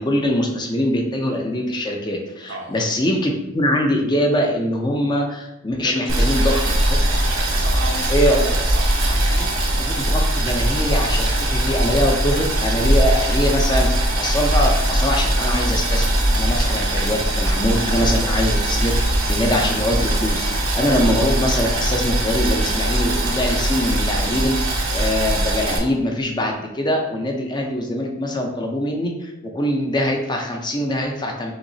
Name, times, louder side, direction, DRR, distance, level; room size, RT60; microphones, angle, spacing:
voice 1, 0.0-6.6 8.1-8.4 9.3-9.4 9.8-24.6 24.9-31.5, left 1 dB, 20° left, 1 dB, 0.6 m, -23 dB
voice 2, 5.8-7.1 7.5-9.2, right 2 dB, 70° right, 1 dB, 0.7 m, -34 dB
Boiling, 6.1-25.8, right 1 dB, 90° right, 1.0 m, -20 dB
sound 1, 6.7-13.5, equal, 45° left, 1.4 m, -32 dB
5.9 x 3.0 x 2.7 m, 0.92 s
head